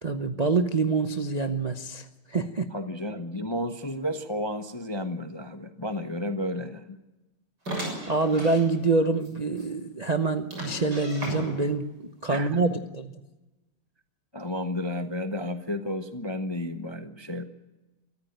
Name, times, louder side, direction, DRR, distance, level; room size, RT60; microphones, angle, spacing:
voice 1, 0.0-2.7 8.1-11.9 12.2-13.1, right 3 dB, 70° right, 7 dB, 0.3 m, -26 dB
voice 2, 2.7-7.0 12.3-12.6 14.3-17.4, left 1 dB, 30° left, 8 dB, 0.4 m, -32 dB
sound 1, 7.7-8.7 9.2-9.3 9.6-9.7 10.5-11.8, right 1 dB, 50° right, 7.5 m, -35 dB
23.5 x 14.5 x 9.1 m, 1.1 s
omnidirectional pair, 2.3 m